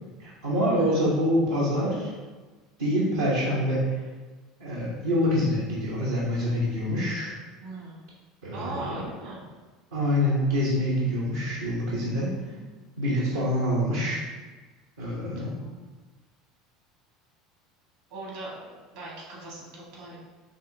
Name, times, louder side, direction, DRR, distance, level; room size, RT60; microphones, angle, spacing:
voice 1, 0.2-2.1 2.8-3.9 4.6-7.3 8.4-8.9 9.9-12.3 13.0-14.2 15.0-15.5, equal, 85° right, -7 dB, 1.1 m, -26 dB
voice 2, 0.7-1.1 7.6-8.0 8.5-9.4 12.2-12.6 13.0-13.4 15.3-15.8 18.1-20.2, right 2 dB, 65° right, -4 dB, 1.4 m, -40 dB
5.5 x 3.1 x 2.8 m, 1.3 s
hypercardioid pair, 75°, 0 cm